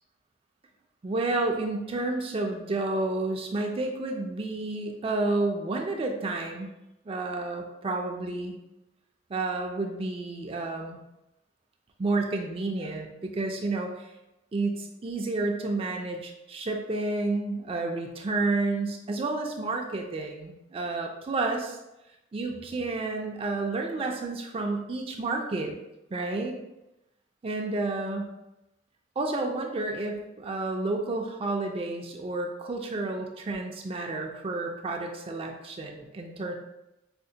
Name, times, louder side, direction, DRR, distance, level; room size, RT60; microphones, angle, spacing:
voice 1, 1.0-6.7 7.1-8.6 9.3-11.0 12.0-14.1 14.5-21.8 22.3-25.7 26.1-26.6 27.4-28.3 29.2-36.6, right 2 dB, 30° right, 2 dB, 0.4 m, -30 dB
5.0 x 2.1 x 2.7 m, 0.92 s
head